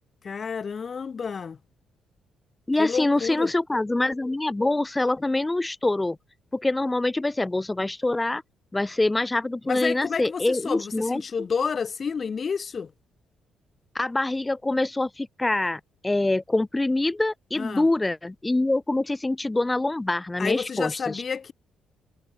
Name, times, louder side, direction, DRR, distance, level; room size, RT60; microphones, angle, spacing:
voice 1, 0.2-1.6 2.8-3.5 9.7-12.9 17.6-17.9 20.4-21.5, left 6 dB, 40° left, 5.4 m, -30 dB
voice 2, 2.7-6.2 6.5-8.4 8.7-11.2 13.9-21.2, left 2 dB, 15° left, 5.5 m, -25 dB
cardioid pair, 90°, 0 cm